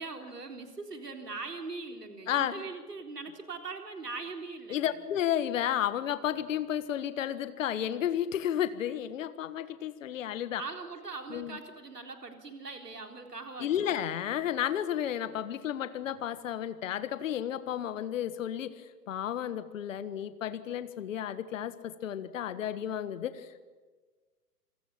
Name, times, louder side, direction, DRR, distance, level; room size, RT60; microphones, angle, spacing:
voice 1, 0.0-4.9 10.5-13.9, right 4 dB, 80° right, 4 dB, 3.9 m, -41 dB
voice 2, 2.3-2.6 4.7-10.6 11.3-11.6 13.6-23.6, left 10 dB, 55° left, 12 dB, 1.5 m, -32 dB
28.0 x 26.0 x 7.3 m, 1.4 s
figure-of-eight pair, 115°, 47 cm